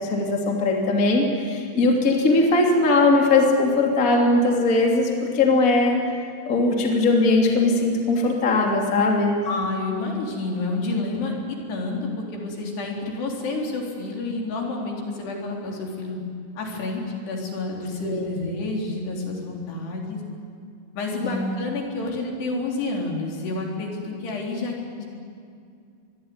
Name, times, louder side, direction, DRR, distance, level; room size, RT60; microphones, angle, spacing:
voice 1, 0.1-6.0 6.5-9.4 18.0-18.2 21.2-21.5, left 2 dB, 25° left, 0 dB, 2.0 m, -20 dB
voice 2, 9.4-11.3 11.7-16.2 16.6-20.2 21.0-25.1, left 3 dB, 55° left, -1 dB, 5.5 m, -29 dB
25.0 x 21.0 x 9.5 m, 2.4 s
omnidirectional pair, 5.9 m